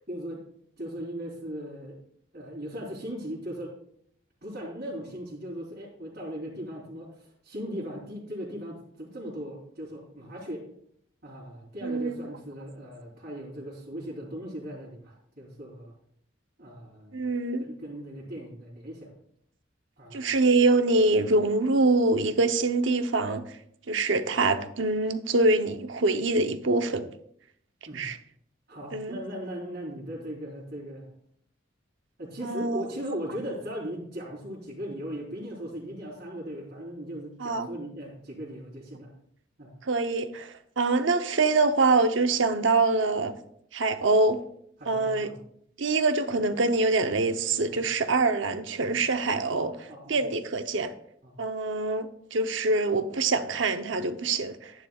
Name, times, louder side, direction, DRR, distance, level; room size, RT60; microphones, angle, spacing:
voice 1, 0.1-0.4 0.8-2.0 2.3-3.7 4.4-10.6 11.2-15.9 16.6-17.3 17.6-19.1 20.0-20.3 27.9-28.1 28.7-31.1 32.2-39.1 39.6-39.7 44.8-45.4 47.7-47.8 49.5-50.2 51.2-51.4, equal, 50° right, 3.5 m, -38 dB
voice 2, 11.8-12.2 17.1-17.7 20.1-23.4 23.9-27.1 27.9-28.2 28.9-29.2 32.4-32.9 37.4-37.7 39.8-43.3 43.7-44.4 44.9-45.3 45.8-49.7 50.1-50.9 51.4-54.7, right 3 dB, 70° right, 0.8 m, -25 dB
12.5 x 10.5 x 2.4 m
head